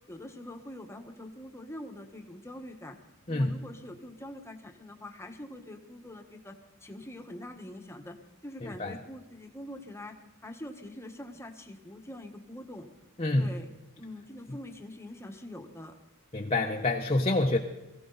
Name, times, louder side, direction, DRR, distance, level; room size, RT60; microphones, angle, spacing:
voice 1, 0.1-3.0 3.3-8.2 8.4-10.2 10.4-12.9 13.3-13.7 14.0-16.0, left 1 dB, 10° left, 5 dB, 1.3 m, -44 dB
voice 2, 8.6-9.0 13.2-13.5 16.3-17.6, left 2 dB, 25° left, 2 dB, 0.9 m, -27 dB
22.5 x 15.5 x 4.0 m, 1.1 s
head